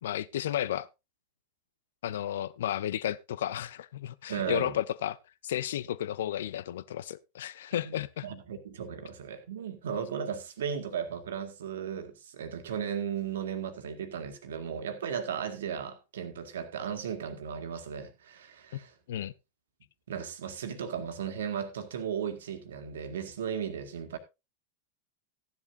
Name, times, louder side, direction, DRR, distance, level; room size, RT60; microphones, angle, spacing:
voice 1, 0.0-0.9 2.0-5.2 5.4-8.3 19.1-19.3, left 11 dB, 60° left, 0.7 m, -33 dB
voice 2, 4.3-4.8 7.8-8.0 8.2-18.9 20.1-24.2, right 7 dB, 60° right, 1.9 m, -36 dB
15.0 x 10.5 x 2.6 m
figure-of-eight pair, 90°, 0 cm